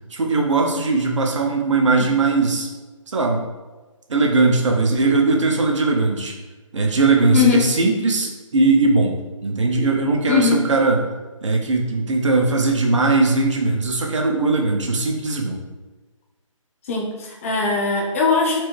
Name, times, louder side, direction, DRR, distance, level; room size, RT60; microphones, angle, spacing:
voice 1, 0.1-2.7 3.1-3.4 4.1-6.3 6.7-11.0 11.4-15.6, right 3 dB, 60° right, 1 dB, 0.9 m, -19 dB
voice 2, 7.3-7.6 10.3-10.6 16.8-18.6, left 5 dB, 25° left, -1 dB, 0.6 m, -20 dB
4.6 x 2.1 x 4.6 m, 1.2 s
figure-of-eight pair, 150°, 17 cm